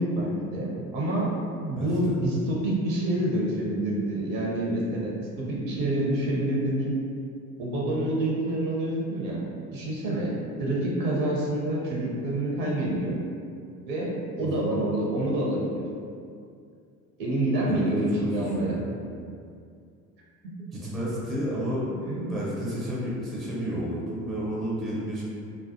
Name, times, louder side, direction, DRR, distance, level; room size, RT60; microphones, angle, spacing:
voice 1, 0.0-6.9 7.6-9.4 9.7-13.2 13.9-15.8 17.2-18.8 20.4-20.5 21.8-22.3, right 1 dB, 50° right, -4 dB, 0.8 m, -27 dB
voice 2, 1.8-2.1 14.4-14.8 17.7-17.8 18.2-18.9 20.7-25.2, equal, ahead, -8 dB, 0.5 m, -31 dB
2.3 x 2.3 x 2.6 m, 2.3 s
figure-of-eight pair, 65°, 43 cm